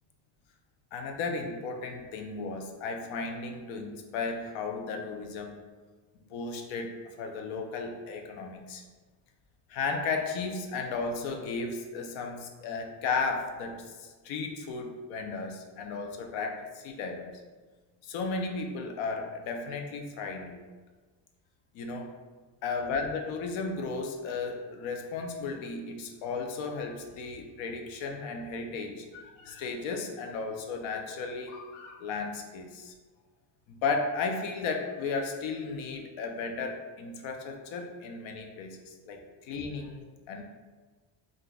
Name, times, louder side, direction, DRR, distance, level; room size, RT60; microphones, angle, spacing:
voice 1, 0.9-5.6 6.3-8.8 9.7-17.4 18.0-20.8 21.7-22.2 22.6-32.9 33.7-40.4, left 4 dB, 80° left, 3 dB, 0.6 m, -35 dB
3.8 x 2.4 x 2.3 m, 1.4 s
cardioid pair, 150°, 45 cm